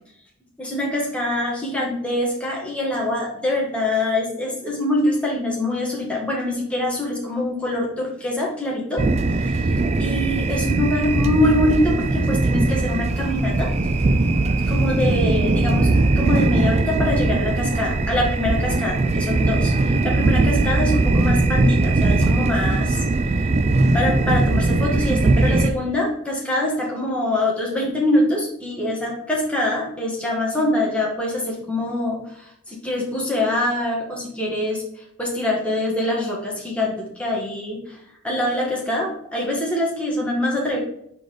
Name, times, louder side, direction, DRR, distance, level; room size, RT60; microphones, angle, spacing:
voice 1, 0.6-9.0 9.3-13.7 14.7-23.5 23.9-38.0 38.2-40.8, left 1 dB, 5° left, -3 dB, 1.6 m, -24 dB
sound 1, 9.0-25.7, right 2 dB, 30° right, 0.4 m, -20 dB
4.9 x 4.1 x 4.8 m, 0.74 s
head